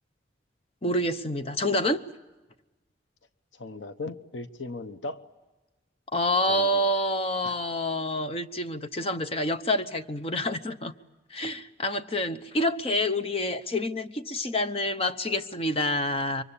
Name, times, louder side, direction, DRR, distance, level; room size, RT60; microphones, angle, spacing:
voice 1, 0.8-2.0 6.1-10.9 11.3-16.4, left 1 dB, 30° left, 10 dB, 0.9 m, -27 dB
voice 2, 3.5-5.2 6.5-6.8 7.4-7.6 11.4-11.5, left 3 dB, 80° left, 10 dB, 0.9 m, -38 dB
27.0 x 24.0 x 8.5 m, 1.1 s
head